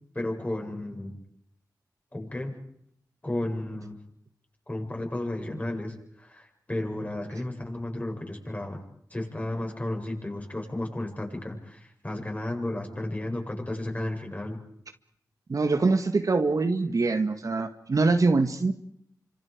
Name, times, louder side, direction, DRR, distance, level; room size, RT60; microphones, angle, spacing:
voice 1, 0.1-1.1 2.1-2.5 3.2-4.0 4.7-8.8 9.1-14.6, left 1 dB, 20° left, 1 dB, 7.8 m, -33 dB
voice 2, 15.5-18.7, right 3 dB, 50° right, 7 dB, 1.9 m, -24 dB
29.5 x 26.0 x 5.2 m, 0.68 s
cardioid pair, 70°, 7 cm